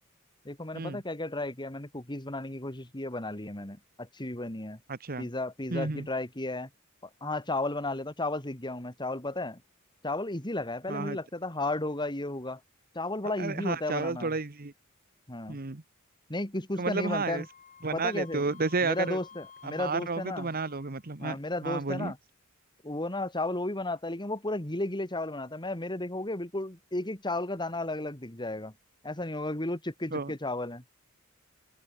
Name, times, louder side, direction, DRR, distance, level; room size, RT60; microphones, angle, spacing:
voice 1, 0.4-4.8 5.2-6.7 7.0-9.6 10.0-12.6 12.9-14.3 15.3-15.6 16.3-17.5 17.9-18.5 18.8-20.5 21.2-22.2 22.8-28.7 29.0-30.8, left 2 dB, 20° left, 2.9 m, -34 dB
voice 2, 4.9-5.3 5.7-6.1 10.9-11.2 13.4-14.7 15.5-15.8 16.8-17.4 17.8-19.2 19.6-22.1 30.1-30.3, right 4 dB, 45° right, 1.2 m, -32 dB
Wind instrument woodwind instrument, 17.2-21.1, left 6 dB, 40° left, 3.3 m, -53 dB
open air
head